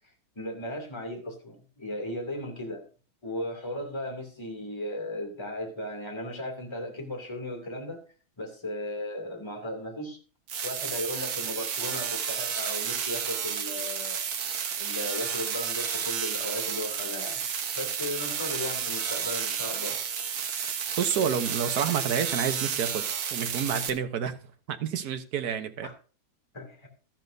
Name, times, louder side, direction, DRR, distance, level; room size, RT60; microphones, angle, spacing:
voice 1, 0.4-2.8 3.2-8.0 8.4-10.2 10.6-14.2 14.8-17.4 17.7-20.0 25.8-25.9 26.5-26.9, left 1 dB, 15° left, 2.6 m, -36 dB
sound 1, 10.5-23.9, right 7 dB, 90° right, 2.0 m, -31 dB
voice 2, 21.0-23.0 23.3-24.4 24.7-25.9, right 7 dB, 55° right, 1.4 m, -29 dB
13.5 x 12.0 x 2.7 m
omnidirectional pair, 2.2 m